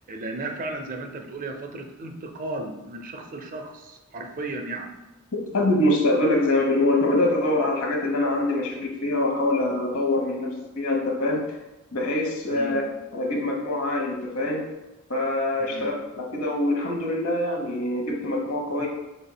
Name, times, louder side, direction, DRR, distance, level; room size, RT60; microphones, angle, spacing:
voice 1, 0.1-4.9 12.5-12.8 15.6-15.9 18.8-18.9, right 2 dB, 40° right, 5 dB, 0.5 m, -35 dB
voice 2, 5.5-11.4 11.9-12.8 13.1-14.6 15.1-18.9, left 1 dB, 70° left, 1 dB, 1.0 m, -24 dB
5.4 x 4.1 x 2.2 m, 1.0 s
head